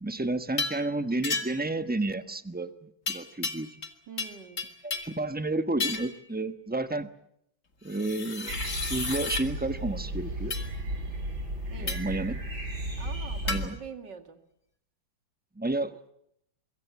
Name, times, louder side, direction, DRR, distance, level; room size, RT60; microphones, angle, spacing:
voice 1, 0.0-2.7 3.1-3.7 4.8-7.1 7.8-8.6 8.9-10.6 11.8-12.4 13.5-13.8 15.6-16.0, right 2 dB, 5° right, 10 dB, 0.8 m, -31 dB
sound 1, 0.6-0.9 1.2-1.7 3.1-5.2 5.8-6.2 7.9-9.5 10.5-10.7 11.9-12.2 13.5-13.6, left 4 dB, 40° left, 2.5 m, -33 dB
voice 2, 4.1-4.7 11.7-12.1 13.0-14.4, right 6 dB, 65° right, 8 dB, 2.8 m, -44 dB
sound 2, 8.5-13.7, right 1 dB, 85° right, 7.5 m, -34 dB
25.0 x 23.0 x 7.4 m, 0.74 s
omnidirectional pair, 2.1 m